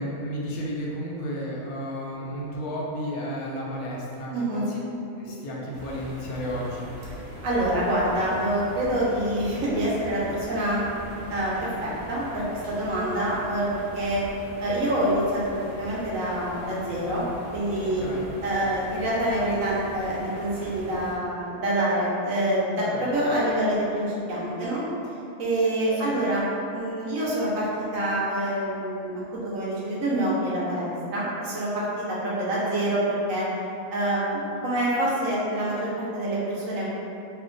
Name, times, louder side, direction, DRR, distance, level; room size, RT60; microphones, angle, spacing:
voice 1, 0.0-4.9 5.2-6.9 18.0-18.3 22.7-23.2 26.0-26.1, equal, 90° left, -4 dB, 1.1 m, -33 dB
voice 2, 4.3-4.7 7.4-10.8 11.3-13.7 13.9-14.2 14.6-17.2 17.5-18.0 18.4-24.8 25.4-26.5 26.7-27.7 27.9-33.4 33.9-36.9, right 1 dB, 65° right, -7 dB, 1.1 m, -26 dB
sound 1, 5.7-21.1, right 1 dB, 15° right, 0.6 m, -41 dB
2.9 x 2.2 x 3.7 m, 2.8 s
omnidirectional pair, 1.5 m